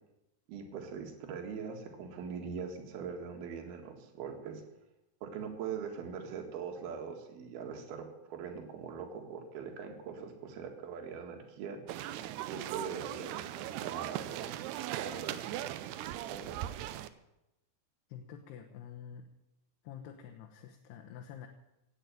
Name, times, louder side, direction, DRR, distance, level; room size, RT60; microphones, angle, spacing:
voice 1, 0.5-4.6 5.2-11.8 12.4-15.4 16.2-16.6, right 6 dB, 70° right, 3 dB, 3.8 m, -42 dB
sound 1, 11.9-17.1, right 13 dB, 90° right, 2.8 m, -39 dB
voice 2, 18.1-19.3 19.8-21.5, left 8 dB, 85° left, 4 dB, 3.1 m, -47 dB
17.0 x 8.4 x 9.1 m, 0.91 s
omnidirectional pair, 4.6 m